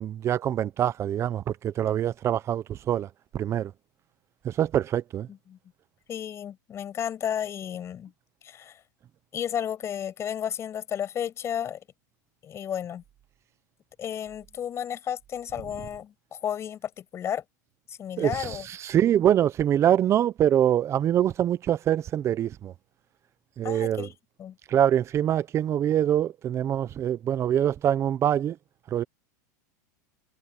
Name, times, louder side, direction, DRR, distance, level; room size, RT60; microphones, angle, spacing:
voice 1, 0.0-3.1 3.3-3.7 4.4-5.3 18.2-22.7 23.6-24.1 24.7-28.6 28.9-29.0, right 10 dB, 30° right, 0.8 m, -24 dB
voice 2, 6.1-8.1 8.4-8.8 9.3-11.8 12.4-13.0 14.0-17.4 17.9-18.7 23.6-24.1 24.4-24.6, left 9 dB, 30° left, 7.4 m, -33 dB
supercardioid pair, 135°, 10 cm